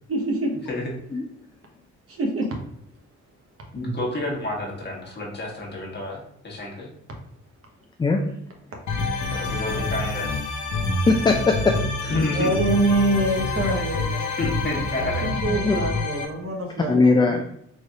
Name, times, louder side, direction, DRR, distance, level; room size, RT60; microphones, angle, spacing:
voice 1, 0.1-0.5 2.1-2.5 12.3-14.2 14.9-17.0, right 1 dB, 50° right, 1 dB, 1.1 m, -25 dB
voice 2, 3.7-6.9 9.3-10.4 12.1-12.5 14.4-15.3, left 2 dB, 35° left, -2 dB, 1.4 m, -29 dB
sound 1, 8.9-16.2, left 3 dB, 75° left, 0.9 m, -27 dB
voice 3, 11.1-12.1 15.6-15.8 16.9-17.4, left 3 dB, 15° left, 2 dB, 0.4 m, -20 dB
4.1 x 3.2 x 2.4 m, 0.71 s
cardioid pair, 90°, 30 cm